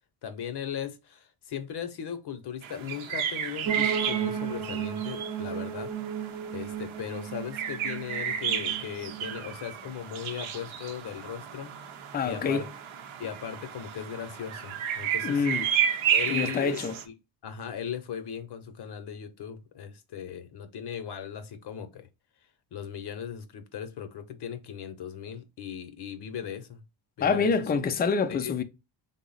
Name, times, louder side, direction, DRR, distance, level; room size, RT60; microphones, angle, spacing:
voice 1, 0.2-5.9 6.5-12.7 13.2-15.5 16.1-16.8 17.0-17.1 17.4-22.1 22.7-26.8 27.2-27.7 28.4-28.6, left 8 dB, 55° left, 0.6 m, -38 dB
sound 1, 2.6-17.0, right 9 dB, 85° right, 0.7 m, -32 dB
sound 2, 3.6-9.5, right 8 dB, 50° right, 0.6 m, -34 dB
voice 2, 12.1-12.6 15.2-15.7 16.3-16.9 27.2-28.6, left 5 dB, 25° left, 0.3 m, -26 dB
3.7 x 2.0 x 3.8 m
cardioid pair, 110°, 47 cm